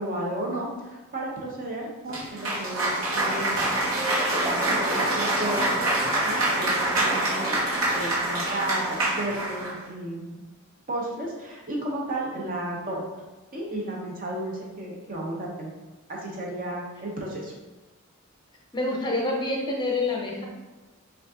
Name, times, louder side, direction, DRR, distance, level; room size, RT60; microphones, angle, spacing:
voice 1, 0.0-5.7 6.3-7.6 7.9-10.5 10.9-13.0 13.5-15.7 16.1-17.5, right 1 dB, 40° right, -2 dB, 0.9 m, -33 dB
Cheering / Applause, 2.1-9.8, right 1 dB, 80° right, 1.2 m, -25 dB
voice 2, 18.7-20.5, left 2 dB, 20° left, -1 dB, 0.7 m, -27 dB
5.2 x 2.6 x 3.6 m, 1.2 s
head